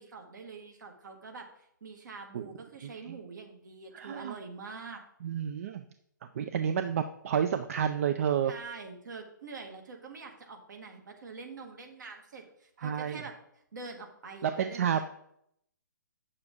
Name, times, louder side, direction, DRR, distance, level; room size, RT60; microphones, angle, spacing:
voice 1, 0.0-5.0 8.5-13.3 13.7-15.0, right 4 dB, 65° right, 4 dB, 1.6 m, -45 dB
voice 2, 2.8-3.2 3.9-4.4 5.2-5.8 6.3-8.5 12.8-13.2 14.4-15.0, right 8 dB, 45° right, 9 dB, 0.5 m, -30 dB
8.4 x 6.7 x 3.6 m, 0.73 s
hypercardioid pair, 140°, 11 cm